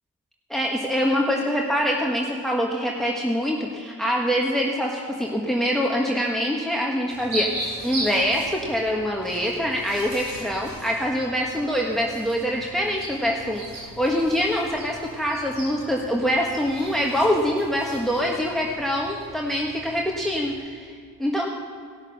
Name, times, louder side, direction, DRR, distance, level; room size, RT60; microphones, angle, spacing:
voice 1, 0.5-21.5, equal, ahead, -1 dB, 1.4 m, -25 dB
sound 1, 7.1-20.5, right 1 dB, 80° right, 3.7 m, -38 dB
17.5 x 6.4 x 6.4 m, 2.2 s
supercardioid pair, 40°, 40 cm